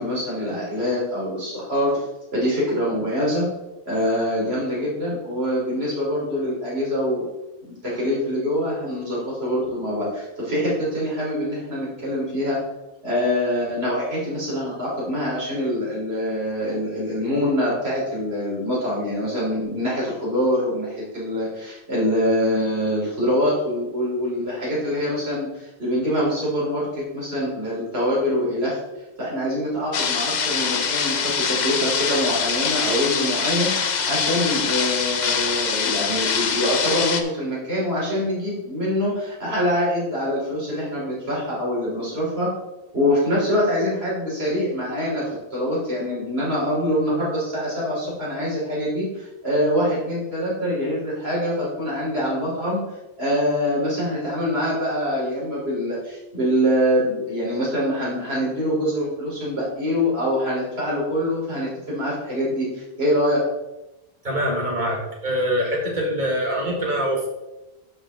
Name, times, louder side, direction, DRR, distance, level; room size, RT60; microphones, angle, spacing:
voice 1, 0.0-2.0 2.3-3.5 3.9-7.2 7.6-12.6 13.0-28.8 29.2-42.5 42.9-45.2 45.5-52.8 53.2-63.4, equal, 70° right, -6 dB, 4.0 m, -24 dB
sound 1, 29.9-37.2, left 6 dB, 45° left, 0.7 m, -24 dB
voice 2, 64.2-67.3, equal, 45° right, -1 dB, 2.2 m, -24 dB
12.0 x 5.5 x 3.6 m, 0.99 s
omnidirectional pair, 1.1 m